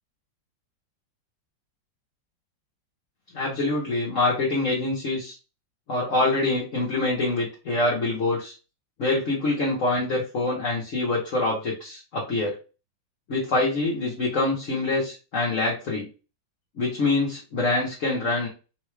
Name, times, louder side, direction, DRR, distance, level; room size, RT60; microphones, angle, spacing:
voice 1, 3.3-5.4 5.9-8.5 9.0-12.5 13.3-16.1 16.8-18.5, left 2 dB, 55° left, -4 dB, 1.0 m, -25 dB
3.8 x 2.2 x 3.1 m, 0.33 s
omnidirectional pair, 2.1 m